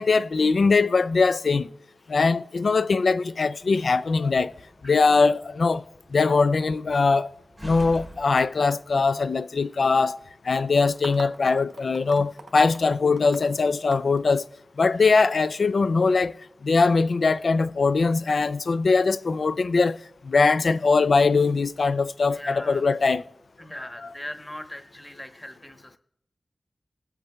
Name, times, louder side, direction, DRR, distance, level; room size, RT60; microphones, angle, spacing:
voice 1, 0.0-1.7 2.1-4.5 4.8-5.8 6.1-7.3 7.6-10.2 10.4-14.4 14.8-16.3 16.6-20.0 20.2-23.2 23.8-24.1, left 4 dB, 70° left, 0.3 m, -21 dB
Slam, 3.6-9.2, equal, 15° right, 0.8 m, -47 dB
sound 1, 10.5-14.9, right 3 dB, 85° right, 1.1 m, -44 dB
voice 2, 22.3-22.8 23.6-26.0, left 1 dB, 15° left, 1.0 m, -39 dB
21.0 x 7.9 x 2.2 m
wide cardioid pair, 100°, 0 cm